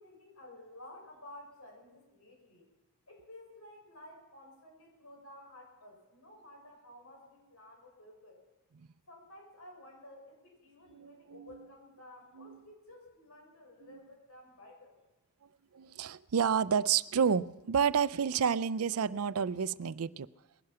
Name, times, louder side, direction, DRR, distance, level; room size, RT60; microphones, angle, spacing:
voice 1, 0.0-2.7 3.1-8.4 9.1-15.0, left 1 dB, 90° left, 0 dB, 6.1 m, -53 dB
voice 2, 10.9-11.6 12.4-12.6 13.9-14.0 15.7-20.3, right 7 dB, 80° right, 17 dB, 0.5 m, -30 dB
20.5 x 11.5 x 5.7 m, 1.1 s
head